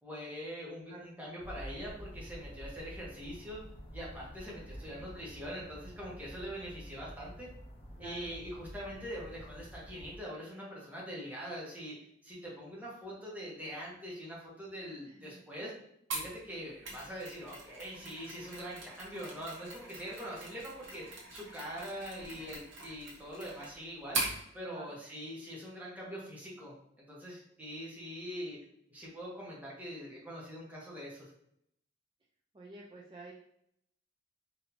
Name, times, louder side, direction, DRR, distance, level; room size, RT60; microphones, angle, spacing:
voice 1, 0.0-3.6 3.9-7.5 8.0-12.0 12.2-15.7 16.1-26.7 27.1-28.6 28.9-31.3, equal, 10° right, -5 dB, 1.1 m, -43 dB
sound 1, 1.4-10.2, equal, 30° left, 0.8 m, -49 dB
voice 2, 8.0-8.3 15.0-15.4 24.7-24.9 32.5-33.3, right 3 dB, 25° right, -3 dB, 0.4 m, -50 dB
Mechanisms, 16.1-24.4, right 3 dB, 70° right, 1.1 m, -42 dB
4.3 x 2.7 x 2.7 m, 0.73 s
head